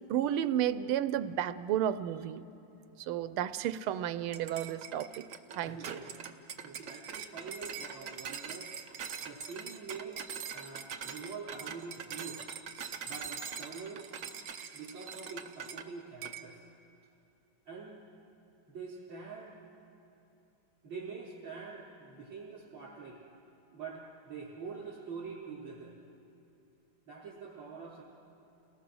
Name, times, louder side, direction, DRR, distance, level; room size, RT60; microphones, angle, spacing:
voice 1, 0.1-2.4 3.0-5.3 5.5-6.0, right 10 dB, 90° right, 14 dB, 1.5 m, -32 dB
sound 1, 4.3-15.9 16.2-16.5, right 7 dB, 55° right, 0.9 m, -43 dB
voice 2, 5.6-6.1 6.6-8.7 9.2-10.2 10.5-12.4 13.0-14.2 14.7-16.6 17.6-18.0 18.7-19.6 20.8-23.2 23.7-26.0 27.1-28.0, right 5 dB, 70° right, -8 dB, 4.1 m, -45 dB
29.5 x 19.0 x 6.3 m, 2.9 s
omnidirectional pair, 2.3 m